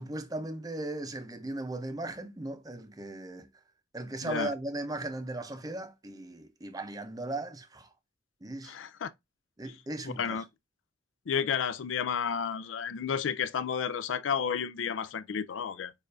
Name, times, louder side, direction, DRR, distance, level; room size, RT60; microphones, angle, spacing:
voice 1, 0.0-3.5 3.9-7.9 8.4-8.8 9.6-10.4, right 2 dB, 20° right, 0.6 m, -37 dB
voice 2, 8.6-9.1 10.0-10.4 11.3-15.9, left 7 dB, 85° left, 0.4 m, -31 dB
6.5 x 2.5 x 2.6 m
head